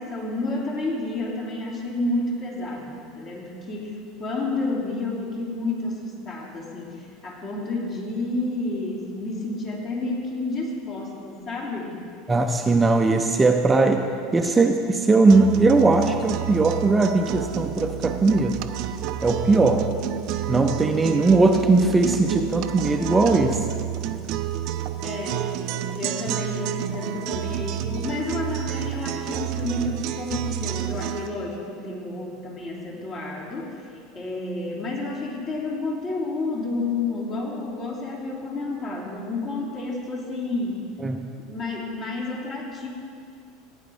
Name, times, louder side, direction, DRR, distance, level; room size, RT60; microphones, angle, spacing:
voice 1, 0.0-12.1 19.5-19.7 24.1-24.2 25.0-25.5 25.9-40.8 41.4-42.9, left 2 dB, 40° left, -3 dB, 2.9 m, -30 dB
voice 2, 12.3-14.1 14.3-18.6 19.2-19.8 20.5-23.7 41.0-41.2, right 3 dB, 15° right, 5 dB, 0.6 m, -19 dB
sound 1, 15.3-31.3, right 11 dB, 55° right, 0.6 m, -30 dB
16.0 x 9.3 x 3.5 m, 2.4 s
figure-of-eight pair, 75°, 0 cm